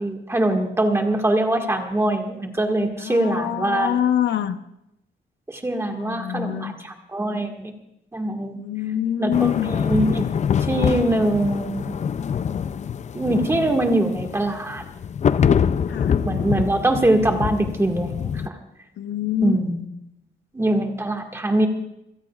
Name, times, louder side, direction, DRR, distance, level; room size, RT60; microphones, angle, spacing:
voice 1, 0.0-3.9 5.5-7.7 8.1-8.6 9.2-10.3 10.7-11.9 13.1-14.8 16.2-18.6 19.4-19.8 20.5-21.7, right 1 dB, 15° right, 3 dB, 1.8 m, -23 dB
voice 2, 3.0-4.6 5.9-6.7 8.5-9.8 15.9-16.2 19.0-19.6, left 10 dB, 75° left, 10 dB, 0.8 m, -25 dB
sound 1, 9.3-18.5, left 7 dB, 40° left, 0.4 m, -25 dB
27.0 x 17.0 x 2.4 m, 0.83 s
wide cardioid pair, 165°, 19 cm